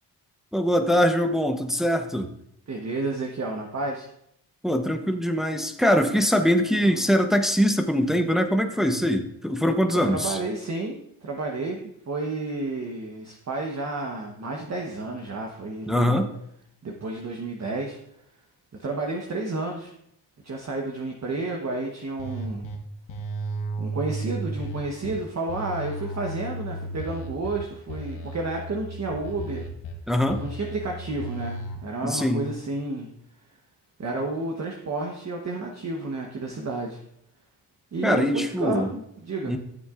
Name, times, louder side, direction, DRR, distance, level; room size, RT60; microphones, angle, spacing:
voice 1, 0.5-2.3 4.6-10.4 15.9-16.3 30.1-30.4 32.0-32.4 38.0-38.9 39.5-39.6, equal, ahead, 5 dB, 0.9 m, -22 dB
voice 2, 2.7-4.1 6.8-7.1 10.0-11.8 12.1-16.2 16.8-18.0 18.8-19.9 20.4-22.7 23.8-29.7 30.4-33.1 34.0-37.0 37.9-39.6, right 2 dB, 35° right, 1 dB, 1.2 m, -31 dB
sound 1, 22.2-22.8 23.1-25.1 25.5-27.6 27.9-29.9 30.3-31.8, right 1 dB, 85° left, 1.3 m, -34 dB
13.0 x 7.1 x 2.5 m, 0.74 s
cardioid pair, 70°, 44 cm